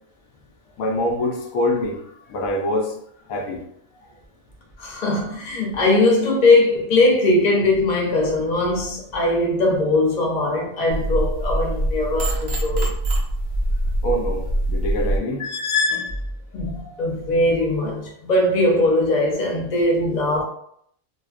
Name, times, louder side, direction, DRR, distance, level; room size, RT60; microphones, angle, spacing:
voice 1, 0.8-2.0 2.3-2.9 3.3-3.6 14.0-15.4 16.7-17.0, left 1 dB, 90° left, 1.0 m, -25 dB
voice 2, 4.8-12.9 15.4-16.2 16.5-20.4, left 2 dB, 50° left, 0.5 m, -20 dB
sound 1, 10.9-15.2, right 1 dB, 65° right, 0.7 m, -23 dB
2.5 x 2.2 x 2.4 m
omnidirectional pair, 1.4 m